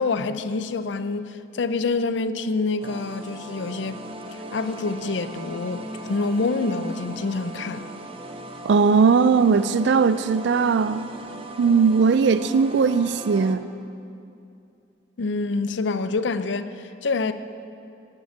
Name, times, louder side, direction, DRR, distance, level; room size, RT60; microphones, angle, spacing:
voice 1, 0.0-4.0 4.5-7.9 15.2-17.3, left 3 dB, 75° left, 0.5 m, -26 dB
sound 1, 2.8-13.6, right 1 dB, 30° right, 0.6 m, -38 dB
voice 2, 8.7-11.1 11.6-13.7, right 5 dB, 70° right, 0.4 m, -19 dB
9.4 x 9.0 x 8.5 m
head